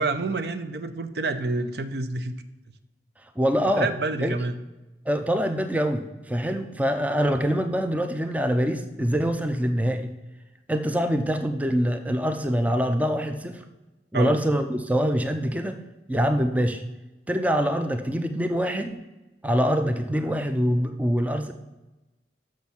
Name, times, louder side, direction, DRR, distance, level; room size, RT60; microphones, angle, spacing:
voice 1, 0.0-2.3 3.8-4.6 14.1-14.4, right 3 dB, 65° right, 9 dB, 0.6 m, -28 dB
voice 2, 3.4-3.9 4.2-4.4 5.1-10.1 10.7-13.6 14.1-15.8 16.1-16.8 17.3-19.0 19.4-21.5, equal, 10° right, 7 dB, 0.4 m, -24 dB
6.3 x 6.1 x 7.0 m, 1.1 s
head